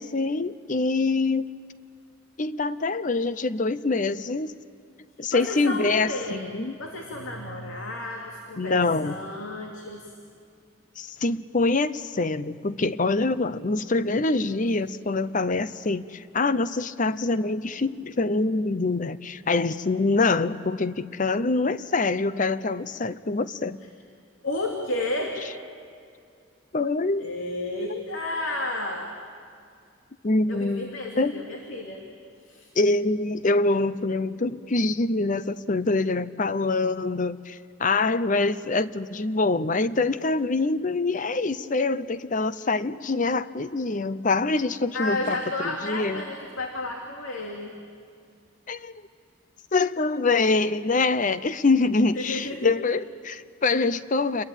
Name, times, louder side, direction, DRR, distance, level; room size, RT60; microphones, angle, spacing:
voice 1, 0.0-1.5 2.4-4.5 5.2-6.8 8.6-9.2 11.0-23.8 26.7-27.3 27.9-28.0 30.2-31.4 32.8-45.4 45.8-46.2 48.7-48.9 49.7-54.4, left 3 dB, 40° left, 14 dB, 0.7 m, -25 dB
voice 2, 5.3-6.4 6.8-10.0 24.4-25.4 27.2-29.1 30.5-32.0 32.4-32.7 44.9-47.7 52.1-52.8, left 2 dB, 80° left, 0 dB, 2.7 m, -32 dB
29.0 x 22.0 x 9.0 m, 2.3 s
head